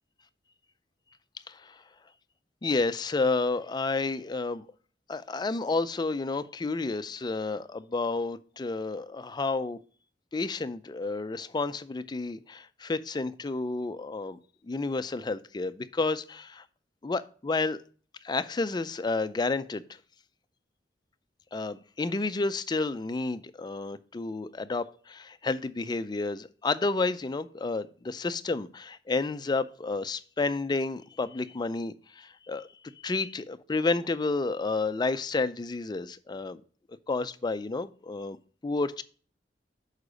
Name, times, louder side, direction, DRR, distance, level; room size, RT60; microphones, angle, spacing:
voice 1, 1.5-1.8 2.6-4.7 5.1-9.8 10.3-16.6 17.0-17.8 18.2-19.8 21.5-32.7 33.0-36.6 36.9-38.4 38.6-39.0, left 3 dB, 25° left, 13 dB, 0.4 m, -30 dB
6.5 x 4.8 x 5.0 m, 0.42 s
head